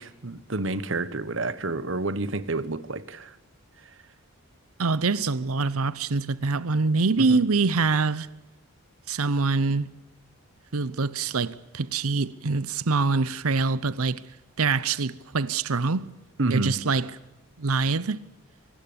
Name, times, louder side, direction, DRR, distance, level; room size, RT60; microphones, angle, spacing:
voice 1, 0.0-3.4 7.2-7.4 16.4-16.8, right 2 dB, 60° right, 1.2 m, -29 dB
voice 2, 4.8-8.3 9.1-9.9 10.7-14.2 14.6-16.1 16.5-17.1 17.6-18.2, right 4 dB, 80° right, 0.8 m, -24 dB
24.0 x 19.0 x 8.7 m
head